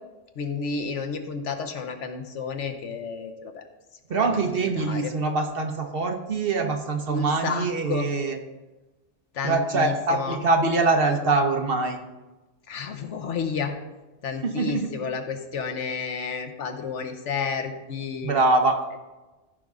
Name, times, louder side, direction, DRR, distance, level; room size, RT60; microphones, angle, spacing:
voice 1, 0.4-3.6 4.2-4.4 4.8-5.1 7.1-8.1 9.3-10.4 12.7-13.7 14.2-18.5, left 5 dB, 75° left, 6 dB, 1.2 m, -31 dB
voice 2, 4.1-8.4 9.4-12.0 14.4-14.9 18.2-18.8, right 3 dB, 55° right, 5 dB, 1.0 m, -24 dB
14.5 x 5.3 x 3.6 m, 1.1 s
omnidirectional pair, 1.3 m